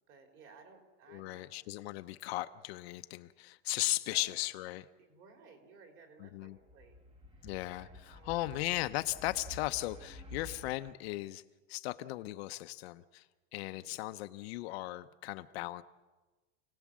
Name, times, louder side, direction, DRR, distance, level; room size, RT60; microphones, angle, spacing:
voice 1, 0.1-1.5 4.1-4.4 5.0-6.9 7.3-7.5 7.8-8.4 13.7-14.0, right 5 dB, 35° right, 4 dB, 3.9 m, -58 dB
voice 2, 1.1-4.8 6.2-6.6 7.4-11.4 11.7-13.3 13.5-15.8, left 17 dB, 55° left, 10 dB, 0.8 m, -37 dB
sound 1, 6.6-10.9, left 2 dB, 15° right, 1.3 m, -50 dB
29.0 x 18.0 x 7.4 m, 1.2 s
supercardioid pair, 175°, 37 cm